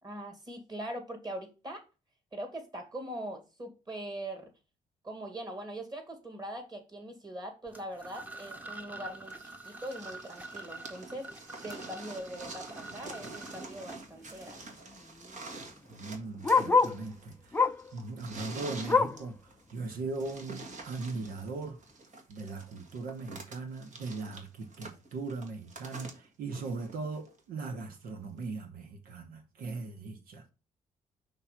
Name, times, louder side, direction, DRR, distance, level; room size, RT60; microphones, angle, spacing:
voice 1, 0.0-1.8 2.3-4.5 5.0-14.7, right 1 dB, 30° right, 2.2 m, -42 dB
sound 1, 7.7-14.5, right 2 dB, 10° right, 1.0 m, -47 dB
sound 2, 9.3-27.4 28.4-28.5, right 3 dB, 55° right, 1.6 m, -47 dB
Bark, 13.3-13.6 13.9-14.0 14.2-17.1 17.5-17.9 18.3-19.3 19.8-19.9 20.3-20.4 21.0-21.1, left 4 dB, 15° left, 0.4 m, -28 dB
voice 2, 15.9-17.7 17.9-19.4 19.7-21.8 22.3-30.5, right 3 dB, 85° right, 1.3 m, -39 dB
5.6 x 3.3 x 5.7 m
cardioid pair, 90°, 15 cm